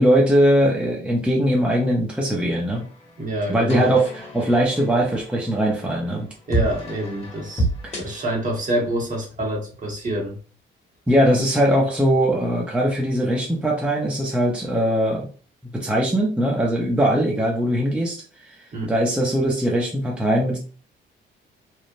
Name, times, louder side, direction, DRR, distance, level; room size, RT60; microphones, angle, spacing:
voice 1, 0.0-2.8 3.5-6.3 7.8-8.0 11.1-15.3 15.7-18.2 18.5-18.6 18.9-20.6, equal, 5° right, -2 dB, 0.6 m, -20 dB
sound 1, 2.7-9.2, right 2 dB, 30° left, 1.1 m, -31 dB
voice 2, 3.2-3.9 6.5-7.7 8.0-10.4 18.7-18.9, right 1 dB, 40° right, 0 dB, 1.1 m, -26 dB
3.1 x 2.0 x 2.5 m, 0.39 s
cardioid pair, 90°, 20 cm